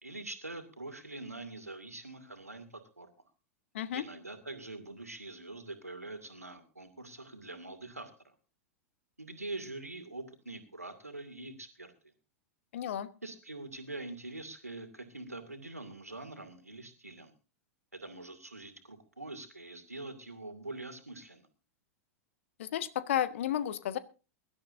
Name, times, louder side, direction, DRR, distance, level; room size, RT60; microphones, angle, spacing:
voice 1, 0.0-3.1 3.9-8.3 9.2-12.1 13.2-17.3 17.9-21.5, right 2 dB, 85° right, 8 dB, 2.5 m, -44 dB
voice 2, 12.7-13.1 22.6-24.0, left 11 dB, 55° left, 15 dB, 1.2 m, -32 dB
23.0 x 12.5 x 2.6 m, 0.32 s
figure-of-eight pair, 95°, 8 cm